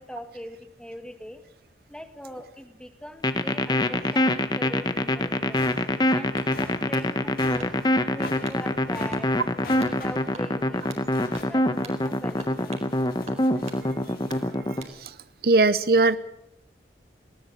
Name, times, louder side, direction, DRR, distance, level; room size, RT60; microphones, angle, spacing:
voice 1, 0.0-1.4 1.9-5.7 6.1-7.7 8.1-9.3 9.6-10.8 11.2-12.9, equal, 5° left, 8 dB, 1.9 m, -41 dB
sound 1, 3.2-14.8, left 1 dB, 25° left, 1.3 m, -24 dB
sound 2, 5.5-14.5, left 2 dB, 55° left, 4.9 m, -44 dB
sound 3, 6.3-7.1 7.6-8.0 8.4-8.6 9.1-9.3 9.8-10.0 10.3-11.1 11.3-11.6 11.8-12.0 12.4-12.9 13.3-13.8 14.3-15.0, right 4 dB, 40° right, 4.4 m, -45 dB
voice 2, 15.4-16.2, right 3 dB, 60° right, 15 dB, 0.8 m, -19 dB
20.5 x 18.5 x 8.1 m, 0.80 s
head